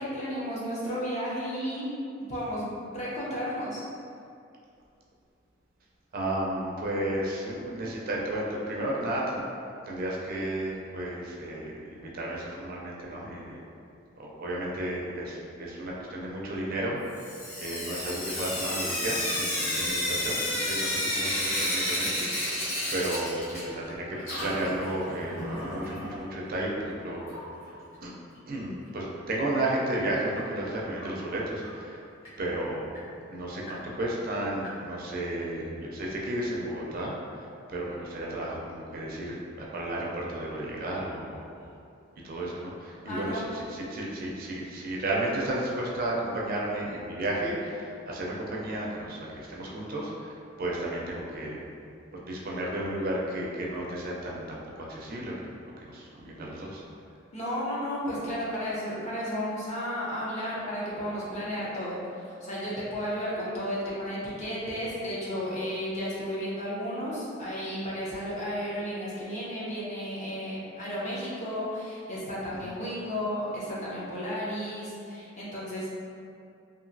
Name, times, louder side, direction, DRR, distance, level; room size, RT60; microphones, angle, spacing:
voice 1, 0.0-1.9 2.3-3.8 43.1-43.4 57.3-62.0 62.4-75.9, equal, 35° left, -8 dB, 0.7 m, -33 dB
voice 2, 6.1-9.4 9.8-13.6 14.2-17.0 17.6-22.6 22.9-27.3 28.0-28.1 28.5-32.0 32.4-32.9 33.3-41.7 42.2-51.6 52.1-56.8 72.6-72.7, right 1 dB, 45° right, -3 dB, 0.4 m, -33 dB
Sink (filling or washing) / Drip, 17.1-23.9 24.1-26.1 27.3-27.4 27.7-27.8 28.0-28.1 31.0-31.1 31.6-31.7 32.2-32.3 32.9-33.0 33.7-33.8 34.6-34.7, left 1 dB, 85° left, 1.2 m, -31 dB
2.9 x 2.5 x 2.6 m, 2.5 s
head